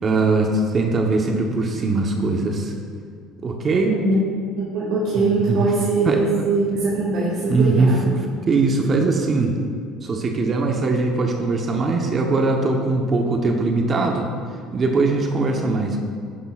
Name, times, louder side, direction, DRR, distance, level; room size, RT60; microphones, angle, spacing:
voice 1, 0.0-2.7 3.4-4.0 5.3-5.7 6.0-6.2 7.5-9.6 10.0-14.3 14.7-16.0, right 3 dB, 35° right, 2 dB, 1.0 m, -21 dB
voice 2, 4.6-8.1, right 3 dB, 55° right, -6 dB, 2.2 m, -22 dB
11.5 x 10.0 x 2.4 m, 2.3 s
supercardioid pair, 105°, 0 cm